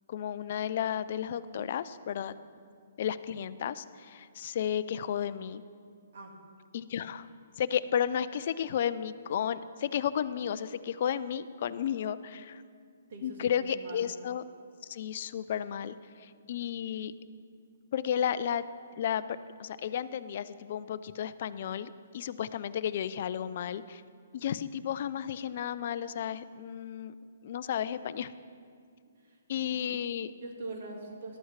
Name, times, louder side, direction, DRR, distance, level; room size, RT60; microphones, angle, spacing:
voice 1, 0.1-2.3 3.0-5.6 6.7-7.3 7.6-12.6 13.2-14.4 14.8-17.1 17.9-18.6 19.0-19.2 19.6-24.0 24.3-27.1 27.4-28.3 29.5-30.3, left 9 dB, 45° left, 13 dB, 0.4 m, -33 dB
voice 2, 13.1-14.1 29.2-29.7 30.4-31.4, right 2 dB, 55° right, 1 dB, 1.8 m, -43 dB
14.0 x 12.0 x 3.2 m, 2.2 s
hypercardioid pair, 160°, 0 cm